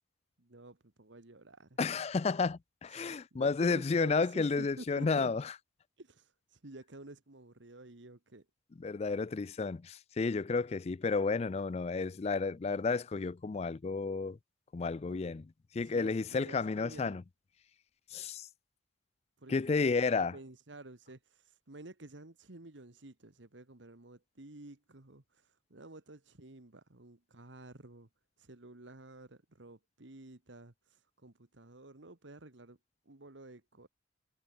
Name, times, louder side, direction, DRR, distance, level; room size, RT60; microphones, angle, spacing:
voice 1, 0.4-1.8 2.9-5.3 6.0-8.5 15.0-15.2 15.8-17.2 19.4-19.8 20.1-28.1 28.4-32.8 33.1-33.9, right 2 dB, 75° right, 1.7 m, -51 dB
voice 2, 1.8-5.4 8.8-14.4 14.7-15.4 15.7-17.2 18.1-18.5 19.5-20.3, left 4 dB, 35° left, 0.4 m, -31 dB
head